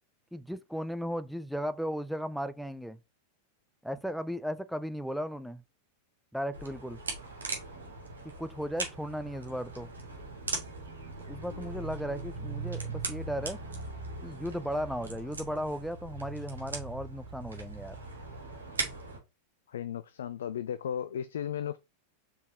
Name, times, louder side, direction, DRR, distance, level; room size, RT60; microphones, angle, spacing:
voice 1, 0.3-3.0 3.8-5.6 6.3-7.0 8.4-9.9 11.3-13.6 14.2-18.0, equal, ahead, 0.5 m, -36 dB
sound 1, 6.5-19.2, right 3 dB, 70° right, 2.1 m, -39 dB
voice 2, 19.7-21.8, left 9 dB, 65° left, 0.4 m, -35 dB
5.3 x 4.3 x 4.7 m
figure-of-eight pair, 90°, 0 cm